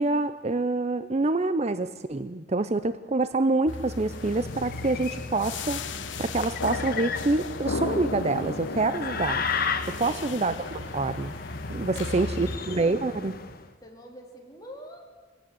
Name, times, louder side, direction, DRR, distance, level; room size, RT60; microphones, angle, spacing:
voice 1, 0.0-5.8 6.2-9.4 10.0-11.3 11.7-13.4, right 3 dB, 35° right, 12 dB, 0.6 m, -26 dB
sound 1, 3.7-12.6, left 2 dB, 70° left, 1.2 m, -35 dB
sound 2, 3.9-13.7, left 5 dB, 50° left, 1.5 m, -35 dB
voice 2, 11.9-12.9 13.8-15.0, equal, 20° left, 0 dB, 3.7 m, -45 dB
23.5 x 17.5 x 7.8 m, 1.4 s
head